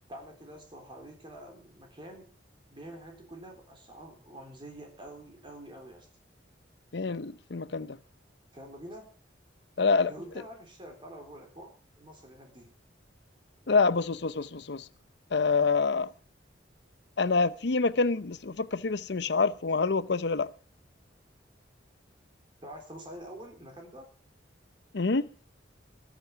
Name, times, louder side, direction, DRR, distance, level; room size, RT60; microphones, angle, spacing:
voice 1, 0.1-2.3 2.7-6.1 8.5-9.1 10.1-11.7 12.0-12.7 22.6-24.1, right 1 dB, 25° right, 3.7 m, -46 dB
voice 2, 6.9-8.0 9.8-10.1 13.7-14.9 15.3-16.1 17.2-20.5 24.9-25.3, left 4 dB, 65° left, 0.7 m, -26 dB
21.5 x 8.5 x 5.8 m
head